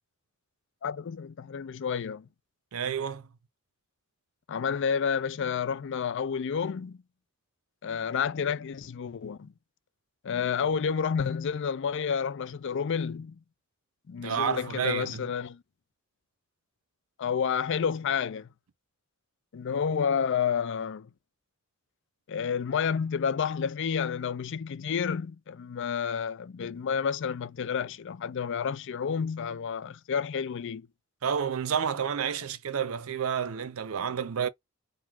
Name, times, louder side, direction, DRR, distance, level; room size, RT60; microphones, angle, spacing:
voice 1, 0.8-2.3 4.5-7.0 7.8-9.5 10.2-13.4 14.1-15.6 17.2-18.5 19.5-21.1 22.3-30.9, left 6 dB, 60° left, 0.4 m, -30 dB
voice 2, 2.7-3.3 14.2-15.2 31.2-34.5, right 7 dB, 75° right, 0.5 m, -30 dB
3.7 x 2.2 x 4.5 m
head